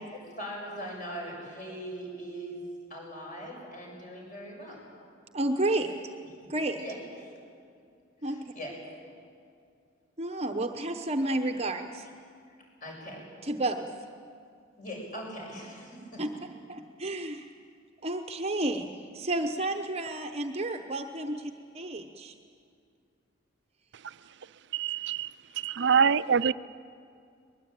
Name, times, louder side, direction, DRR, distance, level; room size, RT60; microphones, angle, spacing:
voice 1, 0.2-4.8 6.4-6.5 6.8-7.3 8.2-8.8 12.8-13.3 14.8-16.2, equal, 40° left, -1 dB, 6.9 m, -41 dB
voice 2, 5.3-6.0 6.5-6.8 8.2-8.4 10.2-12.1 13.4-13.9 16.2-16.3 16.7-17.5 18.0-22.3, right 2 dB, 30° right, 6 dB, 0.9 m, -31 dB
voice 3, 24.7-25.3 25.6-26.5, right 6 dB, 55° right, 16 dB, 0.5 m, -24 dB
22.5 x 21.0 x 9.0 m, 2.3 s
head